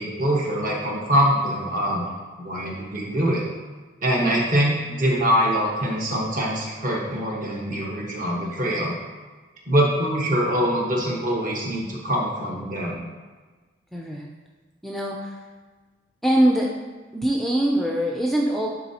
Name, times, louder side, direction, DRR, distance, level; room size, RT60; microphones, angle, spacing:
voice 1, 0.0-2.1 2.4-3.4 4.0-8.9 9.7-13.0, equal, 45° right, -3 dB, 1.3 m, -23 dB
voice 2, 13.9-14.3 14.8-15.4 16.2-16.8 17.1-18.7, right 1 dB, ahead, -1 dB, 0.4 m, -23 dB
10.0 x 3.8 x 2.9 m, 1.3 s
head